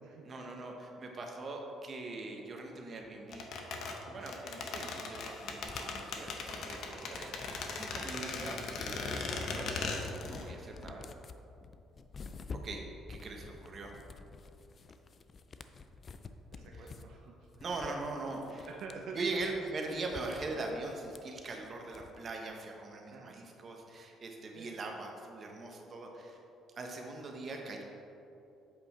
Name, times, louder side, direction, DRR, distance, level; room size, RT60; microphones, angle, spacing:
voice 1, 0.2-4.7 5.0-11.0 12.6-12.8 13.1-13.9 16.7-16.9 17.6-18.7 19.1-26.4 26.8-27.8, right 3 dB, 40° right, 1 dB, 1.1 m, -41 dB
sound 1, 3.3-10.5 10.7-10.8, left 4 dB, 65° left, 0.9 m, -38 dB
sound 2, 5.6-8.1 8.4-22.4, left 4 dB, 35° left, 0.4 m, -50 dB
voice 2, 16.5-17.6 18.5-19.5 23.1-23.4 24.5-24.8, right 4 dB, 65° right, -1 dB, 0.7 m, -48 dB
8.0 x 5.2 x 4.3 m, 2.8 s
cardioid pair, 110°, 0 cm